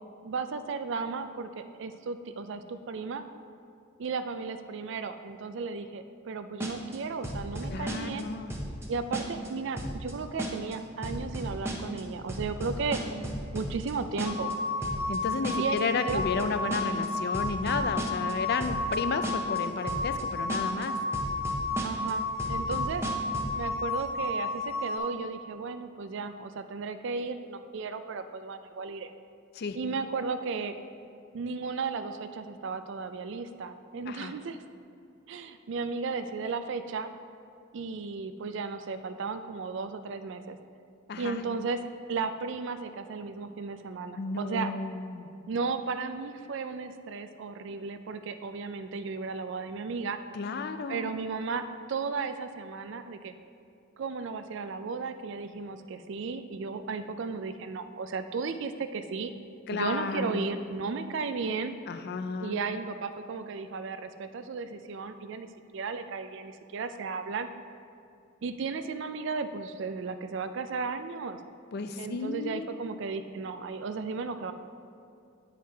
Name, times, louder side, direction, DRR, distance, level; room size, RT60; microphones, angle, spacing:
voice 1, 0.2-3.2 4.0-8.3 8.9-13.0 13.5-14.5 15.6-15.8 16.1-16.2 21.8-23.0 23.6-29.1 29.8-30.8 31.3-34.6 35.3-37.1 37.7-40.6 41.2-41.8 42.1-44.7 45.5-50.2 50.9-53.3 54.0-59.3 59.7-61.7 62.4-65.5 65.7-67.5 68.4-71.4 72.0-74.5, right 4 dB, 60° right, 9 dB, 0.4 m, -35 dB
sound 1, 6.6-7.0 7.2-8.2 8.5-8.9 9.1-9.5 9.8-10.1 10.4-10.7 11.0-12.0 12.3-13.9 14.2-14.5 14.8-15.2 15.4-15.8 16.1-16.4 16.7-17.1 17.3-18.3 18.6-19.0 19.2-19.6 19.9-20.2 20.5-20.9 21.1-22.1 22.4-23.6, right 1 dB, 10° right, 0.7 m, -34 dB
voice 2, 7.7-8.5 15.1-21.0 29.5-29.8 34.1-34.3 41.1-41.4 44.2-45.3 50.3-51.2 59.7-60.6 61.9-62.6 71.7-72.7, left 4 dB, 50° left, 9 dB, 0.4 m, -32 dB
sound 2, 14.2-25.0, left 2 dB, 75° left, 0.9 m, -32 dB
9.9 x 4.7 x 3.4 m, 2.5 s
head